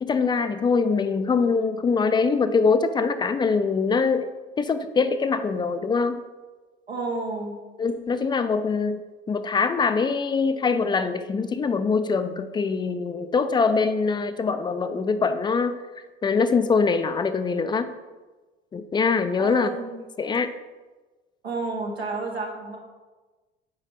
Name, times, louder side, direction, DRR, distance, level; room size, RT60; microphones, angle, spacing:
voice 1, 0.0-4.3 4.6-6.2 7.8-15.8 16.2-17.9 18.7-19.7 20.2-20.5, left 4 dB, 15° left, 10 dB, 0.3 m, -23 dB
voice 2, 6.9-7.6 19.4-20.0 21.4-22.8, right 3 dB, 85° right, -1 dB, 1.0 m, -31 dB
6.0 x 4.9 x 4.5 m, 1.2 s
figure-of-eight pair, 65°, 31 cm